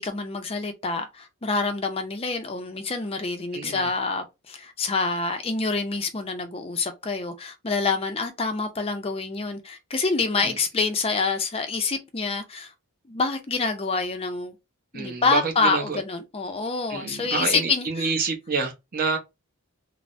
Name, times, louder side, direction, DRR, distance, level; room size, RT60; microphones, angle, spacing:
voice 1, 0.0-12.7 13.1-14.5 14.9-18.1, left 4 dB, 25° left, 0.4 m, -27 dB
voice 2, 3.5-3.9 10.4-10.6 14.9-16.0 16.9-19.2, right 4 dB, 40° right, 0.7 m, -28 dB
3.3 x 2.0 x 2.5 m
head